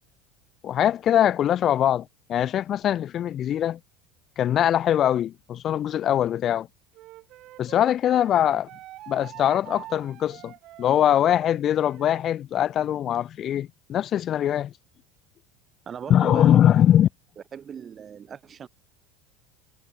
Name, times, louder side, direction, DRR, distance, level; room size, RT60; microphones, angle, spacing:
voice 1, 0.6-3.8 4.4-6.7 7.6-8.7 9.1-10.5 10.8-14.7 16.1-17.1, left 11 dB, 35° left, 0.6 m, -22 dB
Wind instrument woodwind instrument, 6.9-12.2, right 15 dB, 45° right, 5.0 m, -44 dB
voice 2, 15.9-16.7 17.5-18.7, right 8 dB, 25° right, 1.7 m, -38 dB
supercardioid pair, 140°, 0 cm